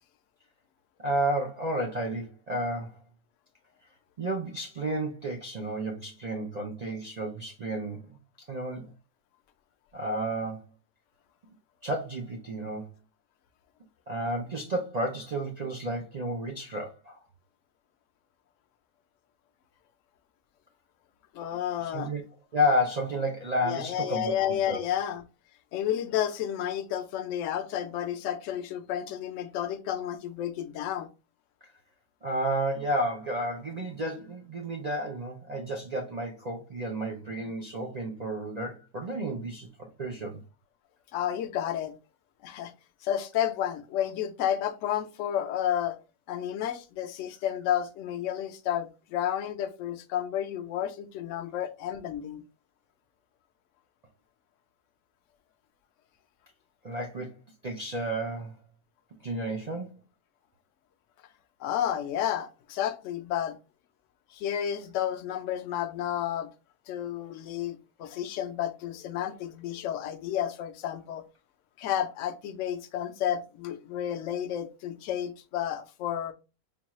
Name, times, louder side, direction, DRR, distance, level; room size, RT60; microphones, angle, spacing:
voice 1, 1.0-3.0 4.2-8.2 8.5-8.9 9.9-10.6 11.8-12.9 14.1-17.2 21.8-22.2 22.5-24.3 24.7-24.8 32.2-39.7 40.0-40.4 56.8-57.3 57.6-58.5 59.2-60.0, right 1 dB, 65° right, 0.4 m, -31 dB
voice 2, 21.3-22.1 23.7-25.2 25.7-31.1 41.1-41.9 42.4-42.7 43.0-46.0 46.3-52.4 61.6-63.6 64.3-66.5 66.9-71.3 71.8-76.3, left 10 dB, 65° left, 0.8 m, -31 dB
5.2 x 2.3 x 2.9 m
omnidirectional pair, 1.5 m